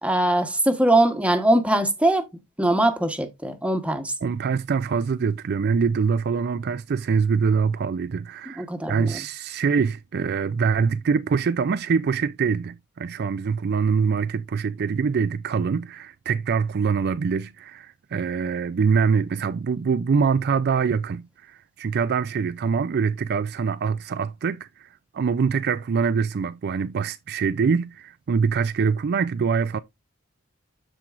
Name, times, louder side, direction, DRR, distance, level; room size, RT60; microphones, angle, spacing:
voice 1, 0.0-2.3 2.6-4.1 8.5-9.2, right 1 dB, 5° right, 1.1 m, -21 dB
voice 2, 4.2-24.9 25.1-29.8, right 5 dB, 50° right, 0.4 m, -24 dB
13.0 x 4.4 x 2.4 m
head